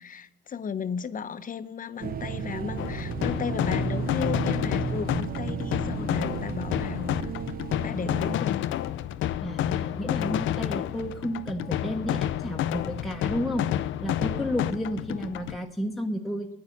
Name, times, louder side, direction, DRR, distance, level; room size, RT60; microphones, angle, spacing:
voice 1, 0.0-7.3 7.8-8.7 15.1-15.3, left 7 dB, 45° left, 13 dB, 0.8 m, -35 dB
sound 1, 2.0-8.4, right 6 dB, 50° right, 0.7 m, -33 dB
sound 2, 2.8-15.6, left 11 dB, 75° left, 0.5 m, -30 dB
voice 2, 9.4-13.6 14.0-16.5, equal, ahead, 1 dB, 1.0 m, -32 dB
9.8 x 9.6 x 9.7 m, 0.91 s
cardioid pair, 90°, 20 cm